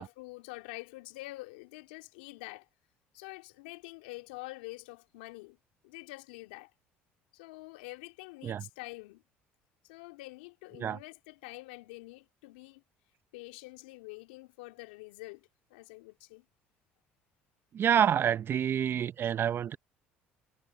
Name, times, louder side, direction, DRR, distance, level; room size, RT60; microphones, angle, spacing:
voice 1, 0.0-2.7 3.1-5.6 5.8-6.7 7.3-9.2 9.8-12.8 13.3-16.4, left 23 dB, 80° left, 2.9 m, -46 dB
voice 2, 17.7-19.8, right 9 dB, 45° right, 0.7 m, -27 dB
hypercardioid pair, 65°, 5 cm